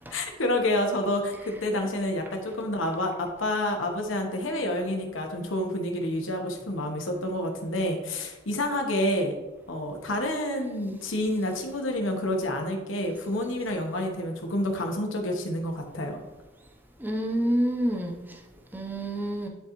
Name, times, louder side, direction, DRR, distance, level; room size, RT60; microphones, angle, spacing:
voice 1, 0.1-9.3 9.7-16.2, left 1 dB, 80° left, 2 dB, 1.1 m, -28 dB
voice 2, 17.0-18.4 18.7-19.5, right 1 dB, 10° right, 0 dB, 0.7 m, -28 dB
10.5 x 3.9 x 3.0 m, 1.1 s
head